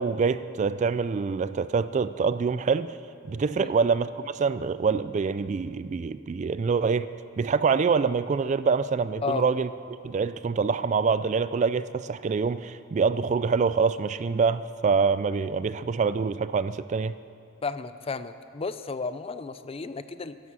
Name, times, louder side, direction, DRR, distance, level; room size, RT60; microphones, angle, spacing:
voice 1, 0.0-2.9 3.2-7.1 7.4-9.7 10.0-17.1, right 5 dB, 35° right, 14 dB, 0.3 m, -25 dB
voice 2, 17.6-20.4, left 4 dB, 30° left, 12 dB, 0.4 m, -33 dB
15.5 x 11.5 x 6.2 m, 2.6 s
head